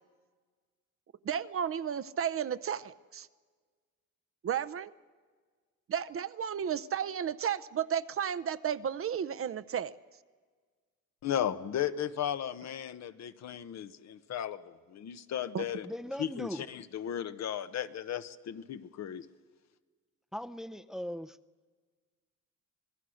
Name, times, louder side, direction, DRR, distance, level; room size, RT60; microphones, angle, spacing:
voice 1, 1.2-3.3 4.4-4.9 5.9-9.9 15.5-15.6, right 8 dB, 45° right, 13 dB, 0.7 m, -33 dB
voice 2, 11.2-15.9 16.2-19.3, left 10 dB, 60° left, 11 dB, 1.0 m, -35 dB
voice 3, 15.8-16.6 20.3-21.3, equal, ahead, 13 dB, 0.6 m, -39 dB
26.0 x 19.5 x 6.4 m, 1.5 s
cardioid pair, 90°, 30 cm